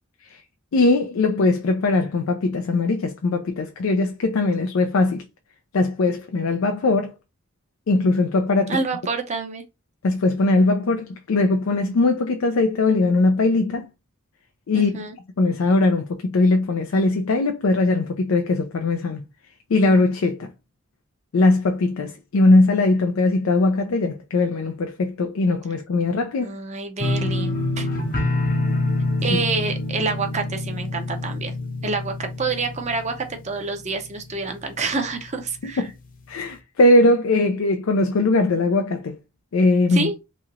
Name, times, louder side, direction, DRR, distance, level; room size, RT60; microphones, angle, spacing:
voice 1, 0.7-5.2 5.7-7.1 7.9-8.8 10.0-13.9 14.7-15.1 15.4-19.2 19.7-20.5 21.3-26.6 35.6-35.9 36.3-39.2 39.5-40.1, left 2 dB, 90° left, 0.4 m, -20 dB
voice 2, 8.7-9.6 14.7-15.2 26.4-27.9 29.2-31.5 31.8-35.8 39.9-40.1, right 4 dB, 35° right, 0.6 m, -27 dB
sound 1, 27.0-33.9 34.2-34.7 35.1-35.2, left 2 dB, 45° left, 0.7 m, -26 dB
3.0 x 2.8 x 2.4 m
head